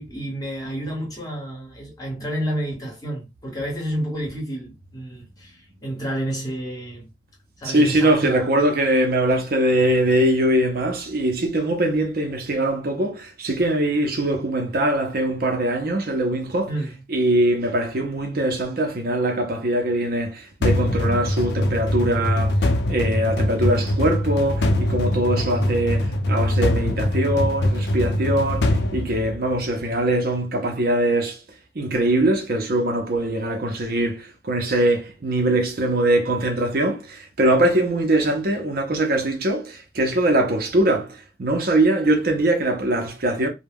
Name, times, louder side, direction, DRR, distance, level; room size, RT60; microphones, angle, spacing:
voice 1, 0.0-7.1 7.6-8.5 16.7-17.0, right 1 dB, 20° left, 1.1 m, -30 dB
voice 2, 7.6-16.7 17.1-22.6 22.9-31.4 31.8-41.1 41.4-43.5, right 1 dB, 55° right, 0.6 m, -22 dB
sound 1, 20.6-29.8, left 1 dB, 70° left, 0.5 m, -22 dB
2.2 x 2.1 x 3.4 m
head